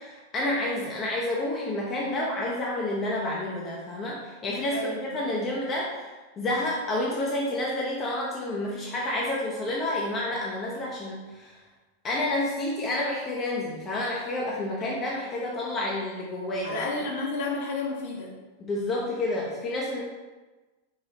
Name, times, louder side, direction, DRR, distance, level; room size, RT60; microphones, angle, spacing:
voice 1, 0.0-6.1 6.4-11.6 12.0-16.8 18.6-20.0, left 1 dB, 25° left, -4 dB, 0.7 m, -29 dB
voice 2, 4.7-5.4 14.8-15.1 16.6-18.4, left 2 dB, 50° left, -2 dB, 1.1 m, -32 dB
4.8 x 3.9 x 2.7 m, 1.2 s
figure-of-eight pair, 90°, 0 cm